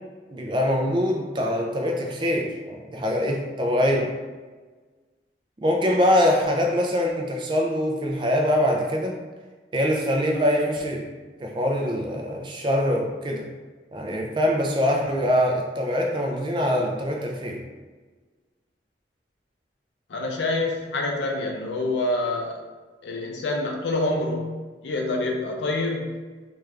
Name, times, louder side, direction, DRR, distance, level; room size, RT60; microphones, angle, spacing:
voice 1, 0.3-4.1 5.6-9.2 9.7-11.1 11.4-13.5 13.9-17.6, equal, 25° right, 1 dB, 0.4 m, -23 dB
voice 2, 20.1-22.6 23.0-24.6 24.8-26.1, left 2 dB, 80° left, 1 dB, 0.4 m, -26 dB
3.4 x 2.4 x 3.2 m, 1.3 s
head